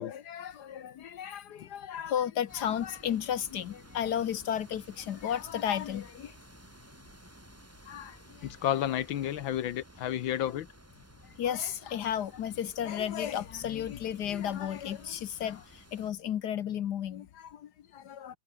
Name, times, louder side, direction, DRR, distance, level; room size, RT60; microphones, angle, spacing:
voice 1, 0.0-6.4 7.8-8.5 11.4-18.4, left 9 dB, 60° left, 1.4 m, -34 dB
sound 1, 2.5-16.1, right 1 dB, 5° right, 2.7 m, -55 dB
voice 2, 8.4-10.7, left 11 dB, 80° left, 1.7 m, -31 dB
omnidirectional pair, 2.1 m